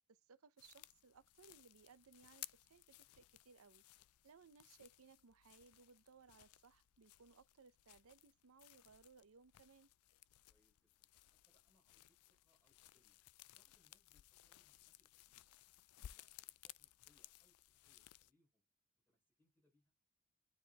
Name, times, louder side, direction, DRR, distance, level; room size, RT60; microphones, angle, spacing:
voice 1, 0.1-3.8 4.2-9.9, right 5 dB, 80° right, 0.6 m, -65 dB
sound 1, 0.6-18.3, left 14 dB, 85° left, 0.4 m, -61 dB
voice 2, 10.4-13.2 13.5-15.5 15.9-18.6 19.0-19.9, left 1 dB, 10° left, 3.9 m, -81 dB
9.5 x 4.4 x 2.3 m
head